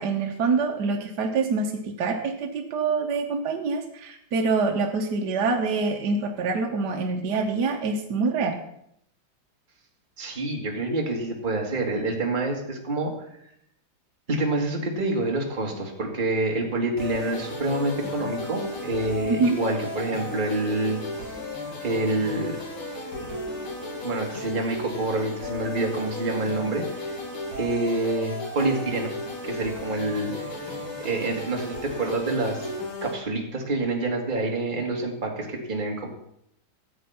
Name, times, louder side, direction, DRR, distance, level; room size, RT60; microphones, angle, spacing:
voice 1, 0.0-8.6 19.3-19.6, right 4 dB, 60° right, 2 dB, 1.5 m, -25 dB
voice 2, 10.2-13.3 14.3-21.4 21.8-22.6 23.2-23.3 24.0-27.1 27.6-29.1 29.4-30.5 31.0-32.7 33.0-36.1, right 2 dB, 25° right, 0 dB, 2.0 m, -27 dB
sound 1, 17.0-33.1, left 2 dB, 85° left, 3.8 m, -34 dB
14.0 x 8.0 x 5.6 m, 0.75 s
omnidirectional pair, 2.2 m